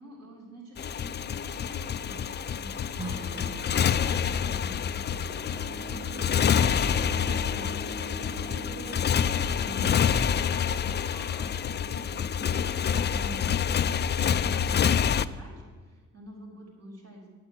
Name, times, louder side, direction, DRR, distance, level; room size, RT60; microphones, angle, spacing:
voice 1, 0.0-13.5 14.1-17.3, right 1 dB, 55° right, -1 dB, 4.2 m, -46 dB
Motorcycle, 0.8-15.3, left 8 dB, 35° left, 0.4 m, -27 dB
Strum, 2.9-8.1, right 1 dB, 20° right, 2.8 m, -45 dB
Bowed string instrument, 5.4-9.6, right 3 dB, 40° right, 2.9 m, -42 dB
8.7 x 8.6 x 9.4 m, 1.5 s
cardioid pair, 90°, 30 cm